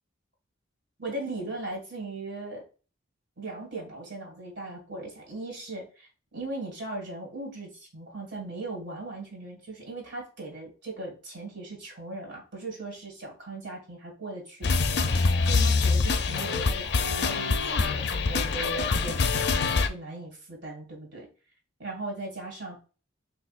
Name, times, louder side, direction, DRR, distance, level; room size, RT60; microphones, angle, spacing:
voice 1, 1.0-2.6 3.4-15.0 15.4-21.3 21.8-22.8, right 2 dB, 60° right, -1 dB, 2.0 m, -38 dB
sound 1, 14.6-19.9, left 4 dB, 55° left, 0.4 m, -25 dB
6.0 x 2.5 x 2.3 m, 0.35 s
head